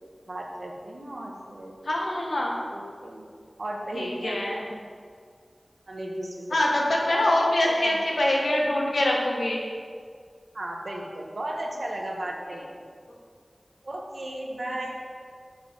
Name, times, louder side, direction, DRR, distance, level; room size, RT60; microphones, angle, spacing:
voice 1, 0.3-1.7 2.7-3.3 3.6-4.5 5.9-6.5 7.1-8.0 10.5-12.8 13.8-15.0, right 1 dB, 65° right, 0 dB, 1.2 m, -35 dB
voice 2, 1.8-2.5 3.9-4.7 6.5-9.6 14.6-14.7, left 1 dB, 80° left, -2 dB, 1.2 m, -24 dB
7.4 x 4.7 x 5.0 m, 2.1 s
wide cardioid pair, 45°, 0 cm